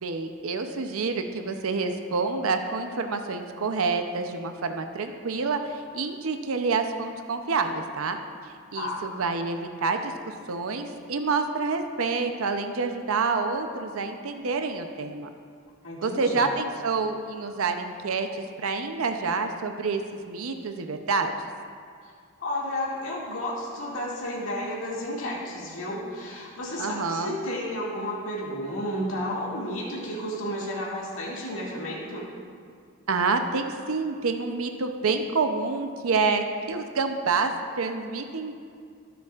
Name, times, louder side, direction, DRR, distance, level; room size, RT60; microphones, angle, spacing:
voice 1, 0.0-8.2 8.7-10.1 10.5-15.3 16.0-20.0 20.3-21.3 26.8-27.3 33.1-38.5, right 4 dB, 80° right, 6 dB, 0.6 m, -28 dB
voice 2, 8.7-9.1 15.8-16.5 22.0-22.1 22.4-32.3, left 1 dB, 70° left, -5 dB, 2.2 m, -32 dB
18.5 x 7.0 x 2.4 m, 2.2 s
head